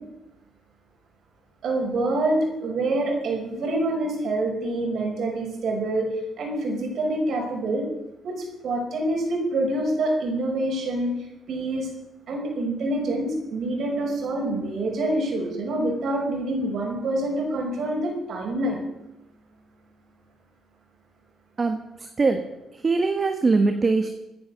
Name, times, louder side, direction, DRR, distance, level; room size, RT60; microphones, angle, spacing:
voice 1, 1.6-6.1 6.4-7.9 8.2-11.1 11.5-11.9 12.3-18.8, right 1 dB, 65° right, 0 dB, 5.7 m, -26 dB
voice 2, 21.6-22.5 22.7-24.1, right 3 dB, 35° right, 6 dB, 1.4 m, -22 dB
16.0 x 9.9 x 6.8 m, 0.92 s
cardioid pair, 90°, 0 cm